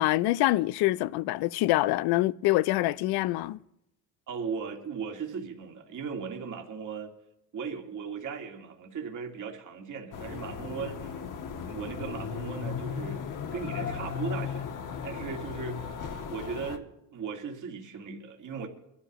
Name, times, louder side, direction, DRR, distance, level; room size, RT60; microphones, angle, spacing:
voice 1, 0.0-3.6, left 17 dB, 75° left, 0.5 m, -25 dB
voice 2, 4.3-7.1 7.5-11.2 11.6-13.2 13.5-14.7 15.0-15.9 16.3-18.7, right 6 dB, 50° right, 2.2 m, -37 dB
sound 1, 10.1-16.8, left 6 dB, 55° left, 1.4 m, -36 dB
23.5 x 12.5 x 3.0 m
supercardioid pair, 80°, 38 cm